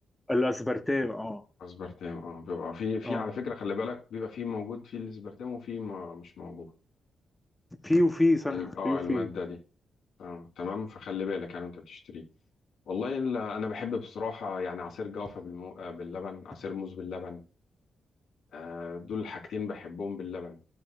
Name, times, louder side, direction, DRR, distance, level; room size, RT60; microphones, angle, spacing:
voice 1, 0.3-1.4 3.0-3.3 7.8-9.3, left 1 dB, 10° left, 0.7 m, -27 dB
voice 2, 1.6-6.7 8.5-9.6 10.2-12.2 12.9-17.4 18.5-20.6, left 5 dB, 90° left, 3.0 m, -36 dB
13.5 x 7.6 x 2.3 m
wide cardioid pair, 140°, 0 cm